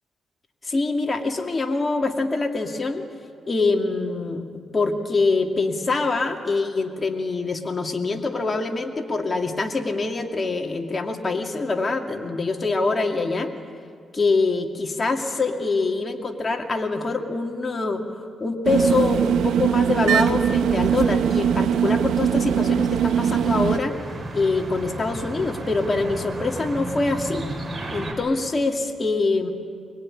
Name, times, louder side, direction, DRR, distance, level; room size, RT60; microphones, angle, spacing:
voice 1, 0.6-3.0 3.5-4.5 4.7-13.5 14.1-23.9 24.3-27.5 27.9-29.5, left 3 dB, 30° left, 3 dB, 2.5 m, -24 dB
sound 1, 18.6-23.8, right 8 dB, 85° right, 0.9 m, -21 dB
sound 2, 22.2-28.1, right 2 dB, 30° right, 5.7 m, -34 dB
23.5 x 23.0 x 9.9 m, 2.2 s
cardioid pair, 85°, 0 cm